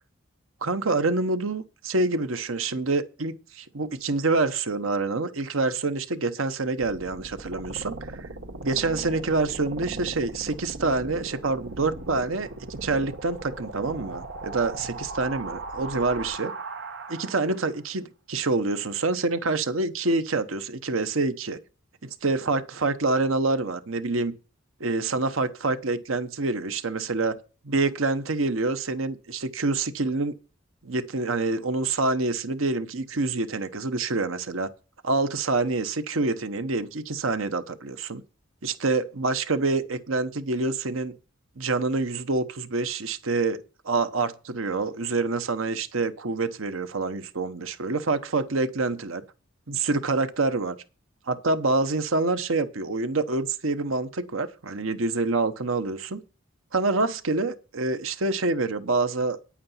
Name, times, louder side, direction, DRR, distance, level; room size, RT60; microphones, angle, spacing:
voice 1, 0.6-8.3 8.6-16.5 17.1-21.6 22.0-24.3 24.8-27.4 27.6-30.3 30.8-34.7 35.0-38.2 38.6-41.1 41.6-43.6 43.8-49.2 49.7-50.8 51.3-56.2 56.7-59.4, right 3 dB, 85° right, 1.1 m, -26 dB
sound 1, 6.8-17.8, right 2 dB, 65° right, 1.3 m, -38 dB
10.0 x 8.6 x 5.7 m
head